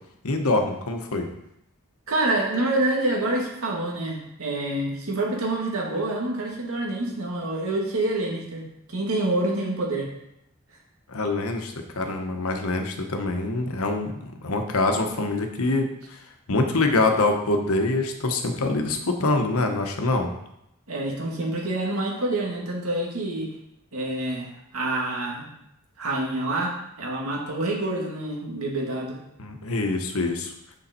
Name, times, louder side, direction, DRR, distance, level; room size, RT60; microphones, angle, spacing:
voice 1, 0.2-1.3 11.1-16.2 16.5-20.3 29.4-30.5, left 2 dB, 80° left, 5 dB, 1.1 m, -25 dB
voice 2, 2.1-10.1 20.9-23.5 23.9-25.5 26.0-29.2, right 2 dB, 80° right, -2 dB, 2.1 m, -27 dB
7.0 x 6.3 x 4.3 m, 0.81 s
head